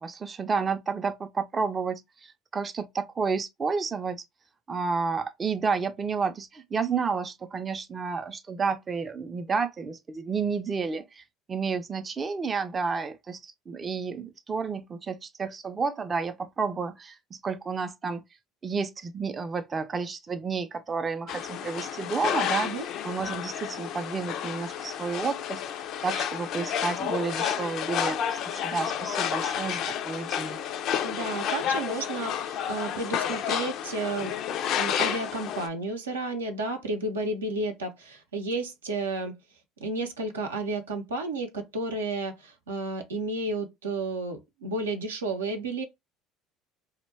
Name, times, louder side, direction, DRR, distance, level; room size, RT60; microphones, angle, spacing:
voice 1, 0.0-4.2 4.7-11.2 11.5-18.2 18.6-22.7 23.0-25.6 26.0-30.6, right 5 dB, 30° right, 0.4 m, -31 dB
sound 1, 21.3-35.7, left 9 dB, 55° left, 0.3 m, -31 dB
voice 2, 31.0-34.3 34.7-39.4 39.8-45.8, right 2 dB, 90° right, 0.6 m, -32 dB
2.1 x 2.1 x 3.3 m
hypercardioid pair, 65°, 0 cm